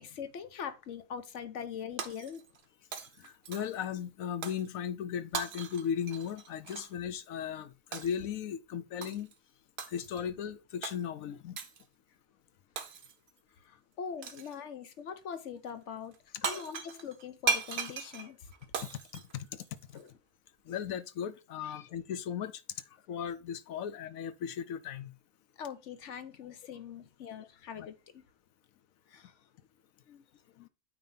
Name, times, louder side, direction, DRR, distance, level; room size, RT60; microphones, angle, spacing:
voice 1, 0.0-2.5 3.2-3.3 13.6-16.2 16.4-18.5 19.9-20.1 21.6-22.2 25.6-28.2 29.1-29.4 30.1-30.2, left 7 dB, 65° left, 1.1 m, -43 dB
Shatter, 2.0-2.6 2.9-3.9 4.4-4.7 5.3-6.9 7.9-8.3 9.0-9.3 9.8-10.3 10.8-11.0 11.6-11.8 12.8-13.3 14.2-14.6 16.1-16.2 16.4-20.0, right 5 dB, 55° right, 1.1 m, -38 dB
voice 2, 3.2-9.3 9.9-11.6 16.4-16.6 18.8-19.6 20.7-22.6 23.1-25.1 27.8-27.9 30.6-30.7, left 8 dB, 90° left, 1.1 m, -37 dB
9.0 x 3.0 x 5.5 m
omnidirectional pair, 1.4 m